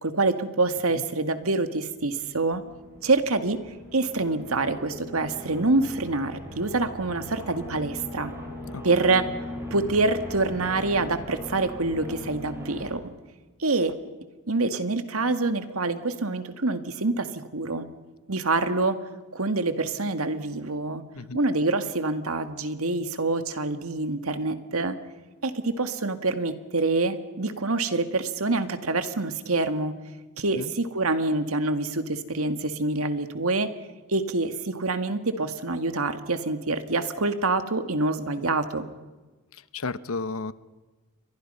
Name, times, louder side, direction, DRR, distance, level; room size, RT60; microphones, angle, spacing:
voice 1, 0.0-2.6 3.0-3.6 3.9-8.3 8.8-9.2 9.7-13.1 13.6-13.9 14.5-17.9 18.3-19.0 19.3-21.0 21.3-25.0 25.4-29.9 30.4-33.7 34.1-38.9, right 3 dB, 80° right, 9 dB, 1.9 m, -26 dB
sound 1, 1.9-12.9, equal, 10° right, 6.6 m, -40 dB
voice 2, 39.5-40.5, left 3 dB, 75° left, 15 dB, 1.0 m, -33 dB
30.0 x 24.0 x 5.6 m, 1.2 s
head